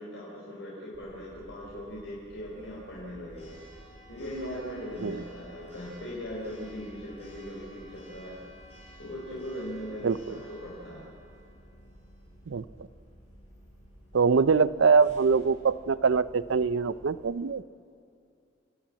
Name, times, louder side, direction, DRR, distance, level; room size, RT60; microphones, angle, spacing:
voice 1, 0.0-3.6 4.1-8.4 9.0-11.0, equal, 70° left, -5 dB, 4.2 m, -39 dB
Church bell, 0.9-17.2, equal, 30° left, 6.0 m, -52 dB
voice 2, 10.0-10.4 12.5-12.6 14.1-17.6, right 5 dB, 80° right, 16 dB, 0.5 m, -23 dB
29.5 x 12.0 x 8.6 m, 2.5 s
head